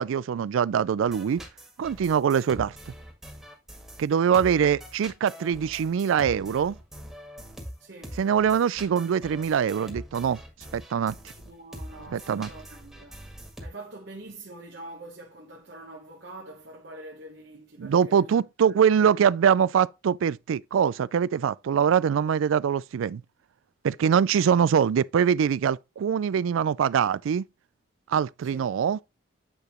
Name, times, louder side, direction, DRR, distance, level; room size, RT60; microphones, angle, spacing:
voice 1, 0.0-1.4 1.8-2.7 4.0-6.8 8.2-10.4 10.7-11.1 12.1-12.5 17.8-23.2 23.8-27.4 28.1-29.0, right 7 dB, 90° right, 0.3 m, -23 dB
sound 1, 1.0-13.7, equal, ahead, 1.7 m, -43 dB
voice 2, 7.8-8.2 11.4-13.2 13.6-18.4 18.7-19.3 28.4-28.6, right 2 dB, 60° right, 1.1 m, -45 dB
8.7 x 4.9 x 3.0 m
head